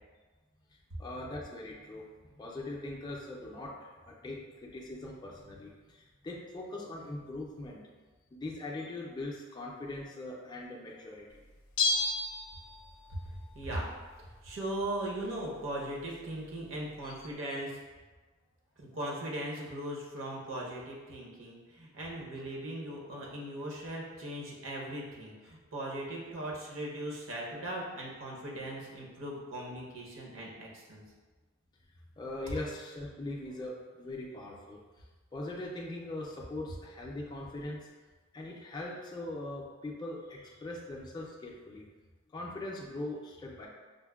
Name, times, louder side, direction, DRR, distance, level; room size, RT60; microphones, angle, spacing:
voice 1, 1.0-2.1 2.3-7.8 8.3-11.4 17.0-17.2 22.2-22.3 32.2-35.1 35.3-37.9 38.3-41.8 42.3-43.7, left 2 dB, 20° left, -2 dB, 0.3 m, -41 dB
Bell, 11.8-13.2 13.4-13.5, left 3 dB, 85° left, 0.4 m, -31 dB
voice 2, 13.5-13.9 14.4-17.7 18.8-31.0, right 1 dB, 65° right, -3 dB, 0.7 m, -39 dB
5.1 x 2.1 x 2.2 m, 1.3 s
head